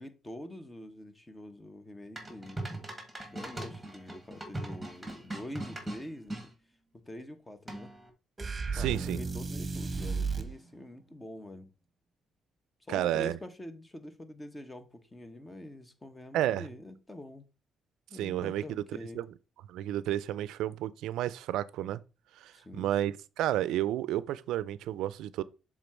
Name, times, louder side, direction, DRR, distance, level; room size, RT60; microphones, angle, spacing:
voice 1, 0.0-2.7 3.2-6.5 6.9-7.9 8.7-11.7 12.8-17.4 18.1-19.2 22.5-22.9, left 1 dB, 15° left, 1.0 m, -45 dB
sound 1, 2.2-6.5 7.7-8.1, right 1 dB, 10° right, 2.0 m, -40 dB
sound 2, 8.4-10.5, right 4 dB, 30° right, 1.0 m, -33 dB
voice 2, 8.7-9.2 12.9-13.4 16.3-16.7 18.2-18.6 19.2-19.3 19.7-22.0 22.4-25.4, right 12 dB, 90° right, 0.4 m, -31 dB
7.0 x 3.7 x 4.4 m
cardioid pair, 90°, 0 cm